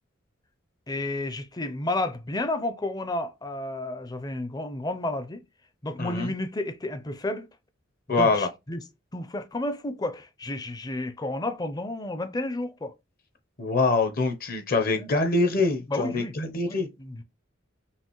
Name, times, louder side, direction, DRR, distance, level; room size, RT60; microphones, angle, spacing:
voice 1, 0.9-5.4 5.8-7.5 8.1-8.8 9.1-12.9 15.0-15.1 15.9-16.3 16.6-17.2, left 2 dB, 20° left, 0.5 m, -31 dB
voice 2, 6.0-6.3 8.1-8.5 13.6-16.9, left 3 dB, 45° left, 0.8 m, -24 dB
5.7 x 2.5 x 3.0 m
head